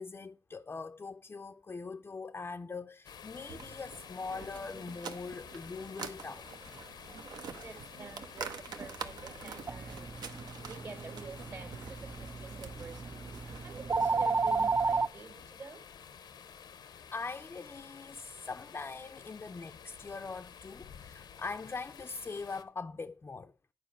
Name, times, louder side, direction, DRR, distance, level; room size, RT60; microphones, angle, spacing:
voice 1, 0.0-6.5 7.5-7.6 17.1-23.5, left 4 dB, 30° left, 0.4 m, -42 dB
sound 1, 3.0-22.6, left 7 dB, 80° left, 0.8 m, -51 dB
sound 2, 3.5-14.3, right 6 dB, 80° right, 0.9 m, -47 dB
voice 2, 7.2-10.2 10.7-15.8, right 4 dB, 50° right, 1.9 m, -49 dB
sound 3, 9.7-15.1, right 3 dB, 30° right, 0.4 m, -33 dB
9.2 x 4.8 x 6.3 m
cardioid pair, 75°, 7 cm